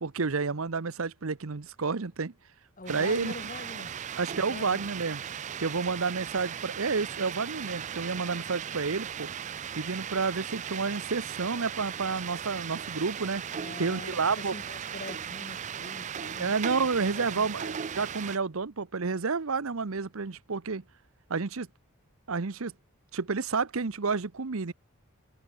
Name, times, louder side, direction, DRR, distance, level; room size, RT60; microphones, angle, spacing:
voice 1, 0.0-2.3 2.9-3.3 4.2-5.2 5.6-9.3 9.7-13.4 13.8-14.5 16.4-20.8 21.3-21.7 22.3-22.7 23.1-24.7, right 4 dB, 65° right, 0.8 m, -30 dB
voice 2, 2.8-3.9 4.3-4.9 13.5-16.9 17.1-17.5, left 2 dB, 40° left, 3.1 m, -44 dB
sound 1, 2.9-18.4, right 8 dB, 35° right, 0.4 m, -37 dB
head